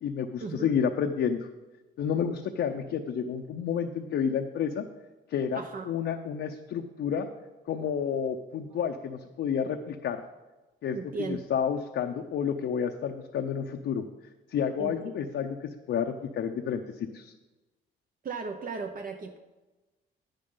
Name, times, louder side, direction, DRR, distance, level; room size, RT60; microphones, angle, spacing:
voice 1, 0.0-1.5 2.0-4.8 5.3-7.3 7.7-10.2 10.8-11.0 11.3-14.0 14.5-17.3, left 7 dB, 65° left, 4 dB, 0.7 m, -30 dB
voice 2, 5.5-5.9 10.9-11.4 14.8-15.1 18.2-19.4, right 4 dB, 45° right, 4 dB, 0.9 m, -36 dB
10.0 x 9.8 x 3.9 m, 1.1 s
cardioid pair, 90°, 20 cm